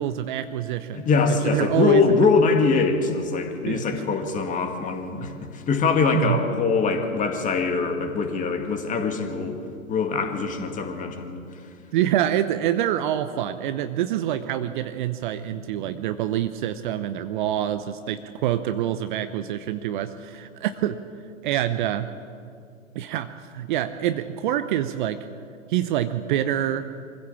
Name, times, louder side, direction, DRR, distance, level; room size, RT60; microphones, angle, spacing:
voice 1, 0.0-2.0 3.7-4.0 5.2-5.4 6.1-6.4 11.9-21.0 21.4-22.1 22.9-25.3 25.7-26.9, right 11 dB, 35° right, 10 dB, 0.8 m, -26 dB
voice 2, 0.9-9.6 9.9-11.4, left 4 dB, 20° left, 5 dB, 2.1 m, -23 dB
24.5 x 15.5 x 7.2 m, 2.5 s
figure-of-eight pair, 115°, 41 cm